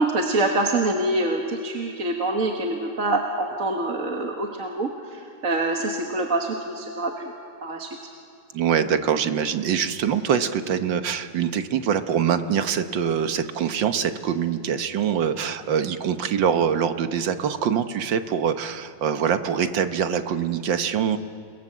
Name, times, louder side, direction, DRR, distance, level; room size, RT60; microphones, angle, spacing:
voice 1, 0.0-7.3 7.6-7.9, right 2 dB, 45° right, 2 dB, 1.8 m, -25 dB
voice 2, 8.5-21.2, right 8 dB, 75° right, 9 dB, 1.8 m, -24 dB
29.0 x 21.0 x 7.5 m, 2.3 s
omnidirectional pair, 2.0 m